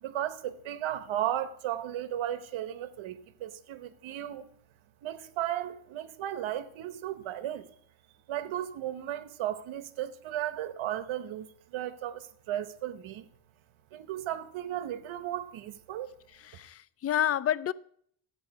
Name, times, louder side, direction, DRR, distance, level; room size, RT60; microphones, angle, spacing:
voice 1, 0.0-4.5 5.0-7.7 8.3-13.3 13.9-16.1, right 12 dB, 85° right, 1.1 m, -35 dB
voice 2, 16.4-17.7, left 11 dB, 35° left, 0.4 m, -29 dB
13.5 x 9.0 x 4.8 m
cardioid pair, 85°, 47 cm